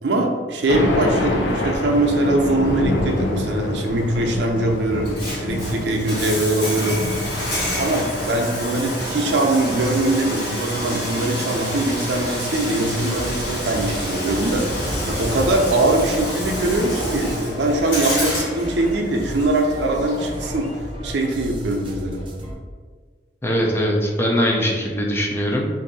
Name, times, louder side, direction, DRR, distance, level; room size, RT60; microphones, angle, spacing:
voice 1, 0.0-7.2 7.7-14.6 15.1-20.7 21.0-22.2, right 2 dB, 75° right, 2 dB, 0.5 m, -22 dB
Thunder, 0.7-16.8, left 2 dB, 85° left, 0.5 m, -29 dB
Bathtub (filling or washing), 4.9-20.9, equal, 65° left, 1.4 m, -28 dB
sound 1, 12.9-22.5, equal, 30° right, 0.7 m, -35 dB
voice 2, 23.4-25.7, equal, 15° left, -1 dB, 0.4 m, -21 dB
2.6 x 2.6 x 4.0 m, 1.6 s
head